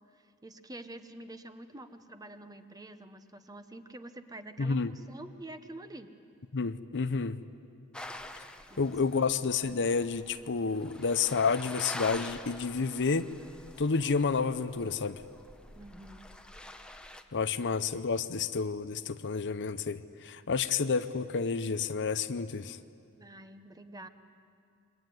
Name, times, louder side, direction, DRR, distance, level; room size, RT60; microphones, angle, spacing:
voice 1, 0.1-6.1 8.7-8.9 9.1-9.3 15.7-16.3 23.2-24.1, right 1 dB, 15° right, 9 dB, 1.2 m, -47 dB
voice 2, 4.6-4.9 6.5-7.4 8.8-13.3 13.8-15.2 17.3-22.8, left 5 dB, 55° left, 12 dB, 0.7 m, -30 dB
sound 1, 7.9-17.2, left 1 dB, 5° left, 1.0 m, -46 dB
27.0 x 23.0 x 9.6 m, 2.4 s
head